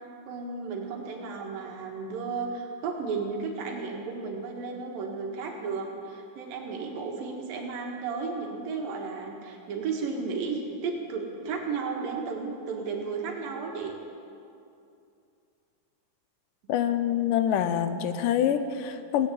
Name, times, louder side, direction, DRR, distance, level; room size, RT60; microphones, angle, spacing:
voice 1, 0.3-13.9, right 4 dB, 85° right, 1 dB, 3.4 m, -33 dB
voice 2, 16.7-19.3, left 9 dB, 80° left, 10 dB, 2.2 m, -26 dB
18.0 x 8.9 x 8.5 m, 2.6 s
omnidirectional pair, 4.0 m